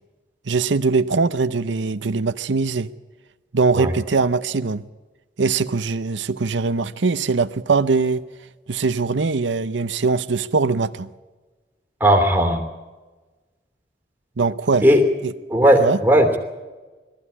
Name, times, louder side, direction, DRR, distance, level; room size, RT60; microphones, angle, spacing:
voice 1, 0.5-2.9 3.5-4.8 5.4-8.3 8.7-11.1 14.4-14.9 15.2-15.3 15.8-16.0, right 4 dB, 85° right, 0.7 m, -21 dB
voice 2, 12.0-12.6 14.8-15.0 15.5-16.4, equal, 10° right, 3.0 m, -16 dB
20.0 x 14.5 x 9.8 m
head